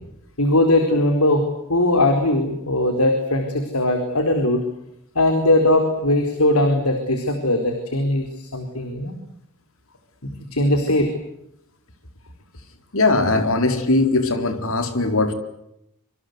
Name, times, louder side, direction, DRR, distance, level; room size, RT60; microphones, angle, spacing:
voice 1, 0.4-4.7 5.1-9.2 10.2-11.1, left 1 dB, 80° left, 6 dB, 4.4 m, -20 dB
voice 2, 12.9-15.3, left 2 dB, 65° left, 8 dB, 4.6 m, -20 dB
27.0 x 26.5 x 8.2 m, 0.80 s
head